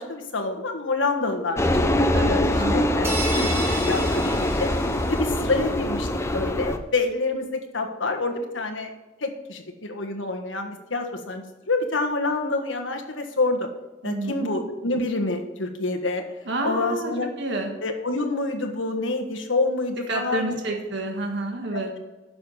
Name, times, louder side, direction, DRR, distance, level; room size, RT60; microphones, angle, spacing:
voice 1, 0.0-3.4 3.9-4.7 5.1-8.9 9.2-13.7 14.0-16.2 16.6-17.3 17.8-20.8 21.7-22.0, left 3 dB, 70° left, 5 dB, 1.5 m, -27 dB
sound 1, 1.6-6.8, left 1 dB, 15° left, 0.7 m, -23 dB
voice 2, 2.1-2.9 3.3-3.5 14.0-14.5 16.4-17.1 17.4-17.7 20.1-21.9, right 2 dB, 65° right, 2 dB, 1.6 m, -29 dB
sound 2, 3.0-5.5, right 2 dB, 15° right, 1.6 m, -32 dB
10.0 x 6.7 x 5.6 m, 1.2 s
head